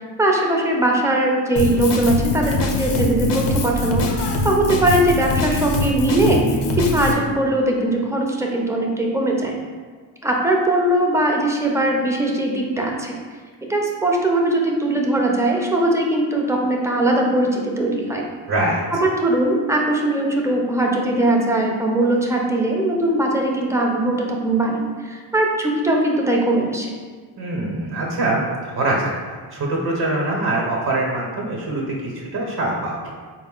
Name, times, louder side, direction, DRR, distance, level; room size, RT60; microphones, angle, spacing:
voice 1, 0.2-4.0 4.4-6.4 6.8-9.6 10.2-13.2 13.7-18.3 19.0-26.9, right 1 dB, 5° right, -1 dB, 0.6 m, -20 dB
Drum kit, 1.6-7.1, left 2 dB, 55° left, 0.7 m, -23 dB
voice 2, 18.5-18.8 27.4-29.1 29.5-33.1, right 2 dB, 50° right, -2 dB, 1.0 m, -23 dB
4.0 x 2.2 x 3.7 m, 1.5 s
cardioid pair, 65°, 49 cm